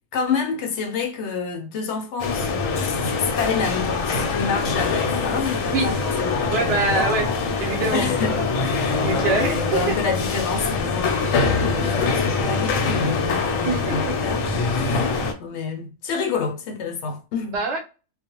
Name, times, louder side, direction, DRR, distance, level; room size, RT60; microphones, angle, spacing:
voice 1, 0.1-7.1 7.9-17.6, left 5 dB, 65° left, 0.8 m, -29 dB
sound 1, 2.2-15.3, left 4 dB, 90° left, 1.0 m, -23 dB
voice 2, 6.5-7.3 7.6-8.1 9.0-10.0 13.6-14.1 17.5-17.8, right 4 dB, 60° right, 0.9 m, -24 dB
2.4 x 2.0 x 2.8 m
omnidirectional pair, 1.4 m